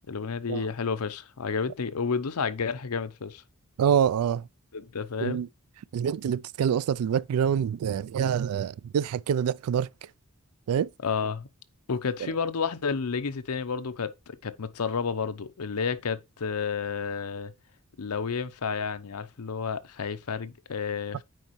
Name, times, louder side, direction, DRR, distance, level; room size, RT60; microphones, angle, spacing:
voice 1, 0.1-3.4 4.7-5.4 11.0-11.5 11.9-17.5 18.0-21.2, left 5 dB, 85° left, 0.7 m, -31 dB
voice 2, 3.8-4.5 5.2-5.5 5.9-9.9 10.7-10.9 12.2-12.3, right 8 dB, 80° right, 0.3 m, -26 dB
9.2 x 4.5 x 3.0 m
head